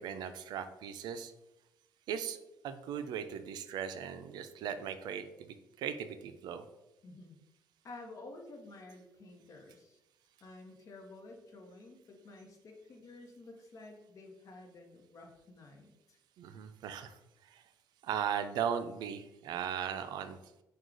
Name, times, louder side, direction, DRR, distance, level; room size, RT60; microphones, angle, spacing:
voice 1, 0.0-1.3 2.1-2.4 2.6-5.5 5.8-6.6 16.4-17.2 17.5-17.6 18.0-20.4, right 8 dB, 75° right, 10 dB, 0.4 m, -38 dB
voice 2, 7.0-7.4 7.8-10.0 10.4-16.2, left 2 dB, 50° left, 3 dB, 0.8 m, -51 dB
4.6 x 2.3 x 3.7 m, 0.91 s
cardioid pair, 120°, 7 cm